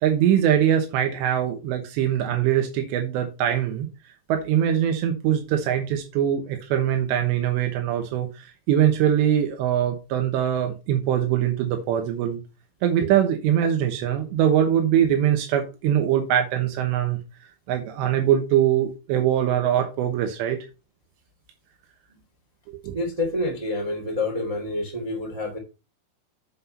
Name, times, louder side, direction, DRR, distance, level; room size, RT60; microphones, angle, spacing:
voice 1, 0.0-3.9 4.3-12.4 12.8-17.2 17.7-20.7 22.8-23.0, right 10 dB, 85° right, 3.3 m, -22 dB
voice 2, 22.9-25.6, left 2 dB, 65° right, 0.3 m, -28 dB
7.5 x 6.0 x 5.5 m
omnidirectional pair, 4.9 m